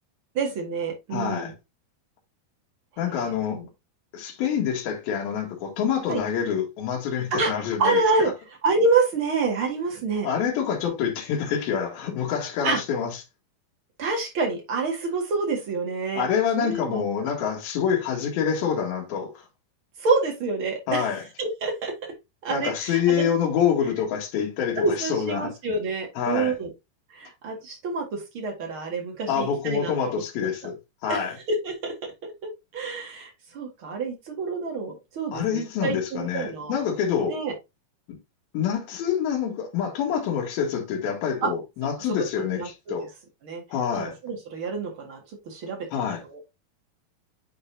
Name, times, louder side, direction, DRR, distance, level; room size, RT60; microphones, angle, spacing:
voice 1, 0.3-1.5 3.1-3.7 6.1-6.2 7.3-7.5 7.8-8.3 8.6-10.3 12.6-12.8 14.0-16.3 16.6-17.3 20.0-21.9 22.4-23.3 24.8-26.7 27.1-29.9 30.4-30.5 31.1-31.9 32.2-32.3 32.7-36.8 37.3-37.5 41.4-41.5 42.4-43.0 43.4-43.6 43.9-45.2 45.5-46.4, right 3 dB, 45° right, 2.1 m, -27 dB
voice 2, 1.1-1.5 3.0-3.6 4.1-8.0 10.2-13.1 16.2-19.4 20.9-21.2 22.5-25.5 26.2-26.5 29.3-30.8 31.0-31.4 35.3-37.4 38.1-38.2 38.5-43.1 43.7-44.1 45.9-46.2, left 8 dB, 75° left, 3.5 m, -26 dB
9.6 x 4.0 x 2.7 m
omnidirectional pair, 4.3 m